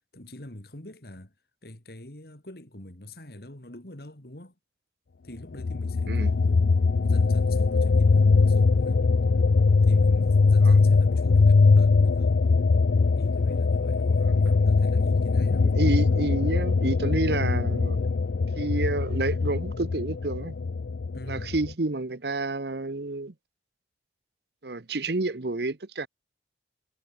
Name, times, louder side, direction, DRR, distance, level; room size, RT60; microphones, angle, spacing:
voice 1, 0.1-1.3 1.6-4.5 5.2-6.7 7.0-9.1 9.8-12.4 13.2-14.3 14.7-15.7 21.1-21.5, left 1 dB, 55° left, 2.8 m, -44 dB
sound 1, 5.6-21.7, left 4 dB, 75° left, 0.5 m, -21 dB
sound 2, 14.5-16.4 16.8-16.9, right 1 dB, 85° right, 3.0 m, -51 dB
voice 2, 15.6-18.1 18.6-20.6 21.3-23.3 24.6-26.1, right 2 dB, 60° right, 1.0 m, -29 dB
head